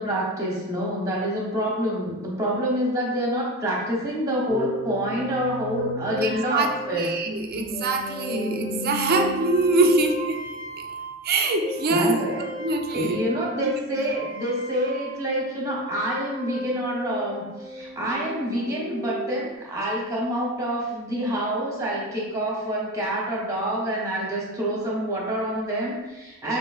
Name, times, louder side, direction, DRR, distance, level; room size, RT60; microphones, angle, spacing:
voice 1, 0.0-7.1 11.9-12.4 12.9-26.6, equal, 15° right, -4 dB, 0.9 m, -27 dB
sound 1, 4.5-15.3 15.6-19.5, equal, 40° left, 1.1 m, -35 dB
voice 2, 6.2-10.4 11.2-12.1 12.6-13.2 13.6-13.7, right 2 dB, 45° right, 4 dB, 0.4 m, -24 dB
5.0 x 3.0 x 2.3 m, 1.1 s
head